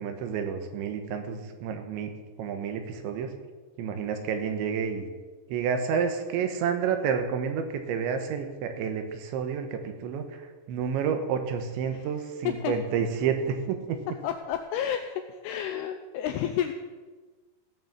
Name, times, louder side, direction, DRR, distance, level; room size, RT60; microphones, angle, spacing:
voice 1, 0.0-2.1 2.4-3.3 3.8-5.1 5.5-14.0, right 7 dB, 80° right, 7 dB, 3.4 m, -30 dB
voice 2, 14.2-16.7, left 10 dB, 90° left, 6 dB, 2.3 m, -30 dB
16.5 x 6.3 x 7.3 m, 1.3 s
omnidirectional pair, 5.2 m